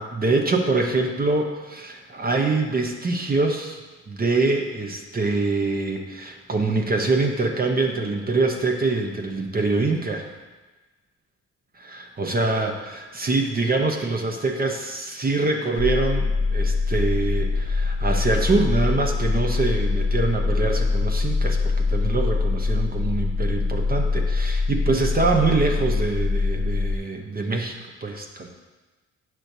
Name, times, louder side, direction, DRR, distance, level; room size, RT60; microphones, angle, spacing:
voice 1, 0.0-3.8 4.1-10.3 11.8-28.5, right 3 dB, 30° right, 3 dB, 0.8 m, -24 dB
sound 1, 15.8-27.0, left 3 dB, 25° left, 0.5 m, -23 dB
8.8 x 6.3 x 2.7 m, 1.2 s
cardioid pair, 90°, 30 cm